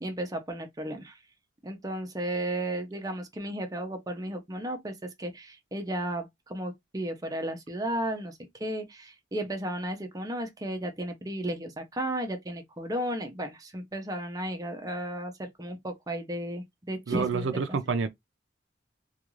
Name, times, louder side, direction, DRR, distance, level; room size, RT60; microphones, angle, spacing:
voice 1, 0.0-1.2 1.6-17.8, right 1 dB, 20° right, 0.6 m, -34 dB
voice 2, 17.1-18.1, right 5 dB, 85° right, 0.5 m, -28 dB
2.4 x 2.3 x 3.0 m
head